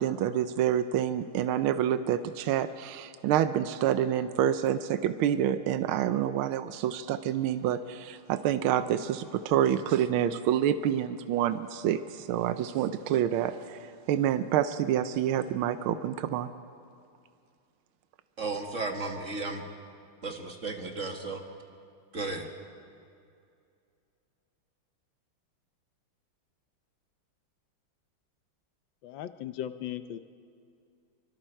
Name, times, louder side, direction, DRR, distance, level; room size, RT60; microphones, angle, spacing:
voice 1, 0.0-13.8 14.1-16.5, right 10 dB, 85° right, 11 dB, 1.5 m, -27 dB
voice 2, 18.4-19.6 20.2-21.4 22.1-22.5, right 3 dB, 40° right, 3 dB, 1.7 m, -34 dB
voice 3, 29.0-30.2, left 11 dB, 70° left, 11 dB, 1.3 m, -37 dB
25.5 x 24.5 x 4.5 m, 2.4 s
omnidirectional pair, 2.3 m